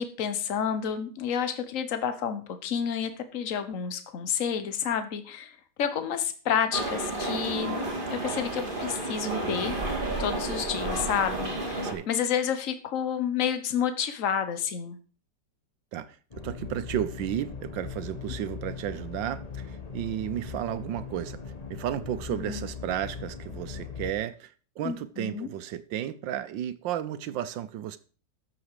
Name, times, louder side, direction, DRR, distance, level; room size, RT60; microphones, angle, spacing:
voice 1, 0.0-9.7 10.2-15.0 22.3-22.7 24.8-25.5, left 8 dB, 50° left, 1.4 m, -30 dB
sound 1, 6.7-11.9, right 2 dB, 30° right, 2.6 m, -31 dB
sound 2, 16.3-24.1, left 6 dB, 25° left, 1.2 m, -39 dB
voice 2, 16.4-21.4 21.7-28.0, right 11 dB, 90° right, 1.5 m, -33 dB
12.5 x 7.1 x 4.9 m
omnidirectional pair, 2.0 m